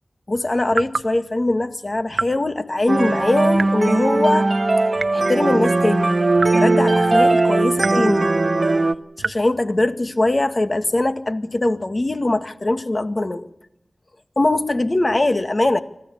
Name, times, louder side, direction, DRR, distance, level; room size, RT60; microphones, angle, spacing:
voice 1, 0.3-4.5 5.1-6.2 6.5-8.3 9.2-13.5 14.4-15.8, left 2 dB, 45° left, 8 dB, 2.0 m, -21 dB
sound 1, 0.7-1.1 2.1-2.4 3.5-3.9 4.9-5.4 6.4-6.6 7.8-8.1 9.2-9.5, right 4 dB, 85° right, 0.9 m, -27 dB
sound 2, 2.9-8.9, right 2 dB, 50° right, 1.4 m, -18 dB
25.5 x 16.0 x 8.6 m, 0.81 s
cardioid pair, 45°, 0 cm